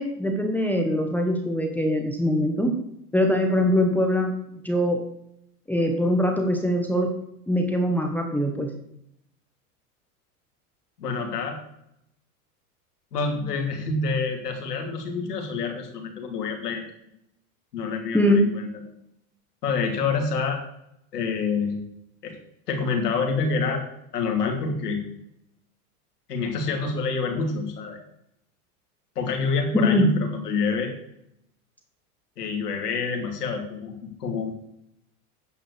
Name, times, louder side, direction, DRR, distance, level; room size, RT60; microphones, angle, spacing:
voice 1, 0.0-2.7 3.1-5.0 5.7-7.1 7.5-8.7 18.1-18.4 29.7-30.0, left 1 dB, 5° left, 2 dB, 1.2 m, -22 dB
voice 2, 11.0-11.6 13.1-16.8 17.7-18.7 19.6-20.6 21.1-21.8 22.2-22.3 22.7-23.8 24.1-25.0 26.3-28.0 29.1-30.9 32.4-34.5, left 4 dB, 85° left, 3 dB, 2.9 m, -27 dB
9.6 x 5.9 x 6.8 m, 0.77 s
hypercardioid pair, 115°, 46 cm